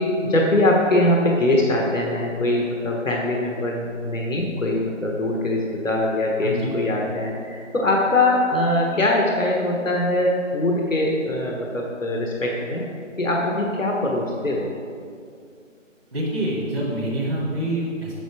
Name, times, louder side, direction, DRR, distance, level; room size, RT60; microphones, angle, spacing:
voice 1, 0.0-12.8 13.2-14.7, left 1 dB, 75° left, -1 dB, 1.3 m, -22 dB
voice 2, 6.4-6.7 16.1-18.2, right 1 dB, 50° right, -8 dB, 2.0 m, -26 dB
8.1 x 6.4 x 4.8 m, 2.4 s
figure-of-eight pair, 165°, 39 cm